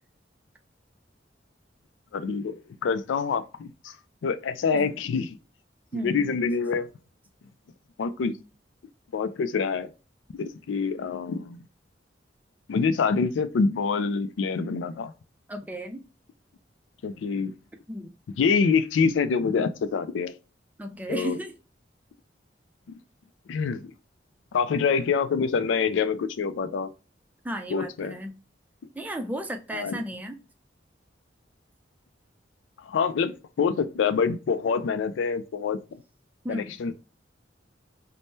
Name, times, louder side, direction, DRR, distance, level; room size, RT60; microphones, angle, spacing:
voice 1, 2.1-2.6 2.8-3.9 4.2-5.4 5.9-6.9 8.0-8.3 9.1-9.9 10.3-11.6 12.7-15.1 17.0-17.5 18.4-20.3 21.1-21.4 22.9-23.0 23.5-23.8 24.5-26.9 27.7-28.1 29.7-30.0 32.8-33.3 33.6-36.0 36.5-36.9, left 5 dB, 85° left, 0.4 m, -26 dB
voice 2, 5.9-6.2 15.5-16.0 17.9-18.1 20.8-21.5 27.4-28.4 28.9-30.4 36.4-36.7, equal, 10° right, 0.4 m, -34 dB
3.5 x 2.1 x 2.6 m
head